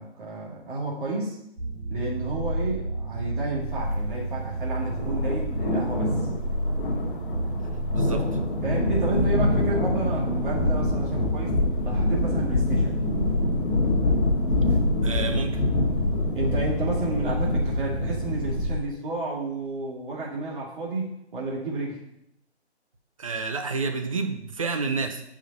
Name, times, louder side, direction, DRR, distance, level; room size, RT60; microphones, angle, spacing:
voice 1, 0.0-1.4 1.9-6.2 8.6-11.5 11.8-13.0 16.3-21.1 21.3-22.0, right 2 dB, 50° right, -5 dB, 2.1 m, -31 dB
sound 1, 1.6-18.8, right 1 dB, 70° right, 1.4 m, -30 dB
sound 2, 4.8-18.7, left 2 dB, 50° left, 1.3 m, -26 dB
voice 2, 7.9-8.4 15.0-15.6 23.2-25.2, right 4 dB, 30° right, 6 dB, 0.6 m, -29 dB
8.7 x 5.0 x 2.6 m, 0.77 s
figure-of-eight pair, 155°, 34 cm